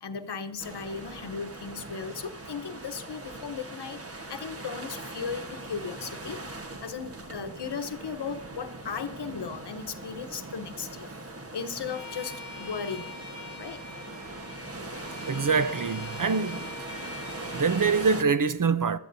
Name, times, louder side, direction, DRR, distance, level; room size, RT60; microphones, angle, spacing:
voice 1, 0.0-11.1 11.5-13.1 13.6-13.8, left 6 dB, 70° left, 1.0 m, -36 dB
sound 1, 0.6-18.2, right 2 dB, 35° right, 1.2 m, -41 dB
Bowed string instrument, 11.8-18.1, left 3 dB, 75° right, 5.6 m, -44 dB
voice 2, 15.3-16.7 17.5-19.0, right 5 dB, 50° right, 0.7 m, -25 dB
23.0 x 12.5 x 2.7 m
cardioid pair, 45°, 41 cm